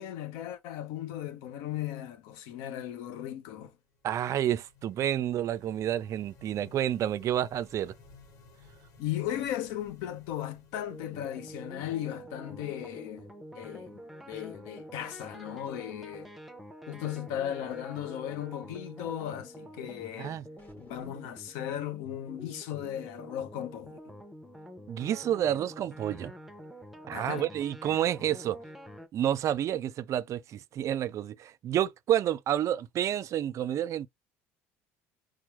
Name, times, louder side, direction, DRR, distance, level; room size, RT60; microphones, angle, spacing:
voice 1, 0.0-3.7 9.0-13.3 13.5-14.0 14.3-16.3 16.9-20.4 20.8-24.0 27.1-27.5, left 11 dB, 75° left, 0.7 m, -36 dB
sound 1, 3.8-12.6, left 3 dB, 55° left, 1.0 m, -58 dB
voice 2, 4.0-7.9 20.2-20.4 24.9-26.3 27.1-28.6 29.1-34.1, right 11 dB, 50° right, 0.4 m, -29 dB
sound 2, 10.9-29.1, equal, ahead, 0.7 m, -47 dB
sound 3, 20.6-21.6, left 1 dB, 20° left, 1.4 m, -57 dB
4.5 x 2.0 x 2.9 m
hypercardioid pair, 75°, 7 cm